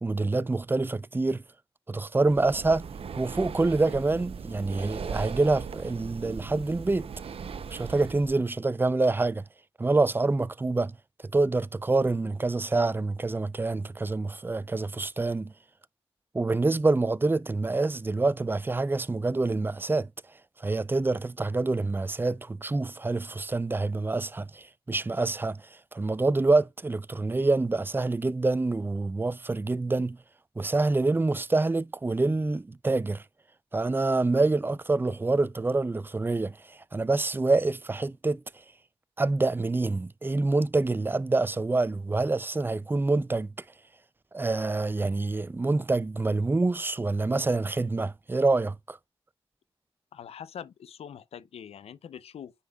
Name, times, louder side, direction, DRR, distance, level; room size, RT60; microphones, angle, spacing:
voice 1, 0.0-1.4 1.9-2.9 3.2-7.1 7.7-9.4 9.8-11.0 11.3-15.5 16.3-20.1 20.6-25.6 25.9-30.2 30.6-33.2 33.7-38.4 39.2-43.5 44.3-49.0, right 3 dB, 20° right, 0.4 m, -26 dB
Breathing, 2.2-8.4, right 6 dB, 70° right, 0.7 m, -38 dB
voice 2, 50.1-52.5, left 8 dB, 90° left, 0.5 m, -43 dB
9.5 x 5.4 x 2.3 m
cardioid pair, 60°, 10 cm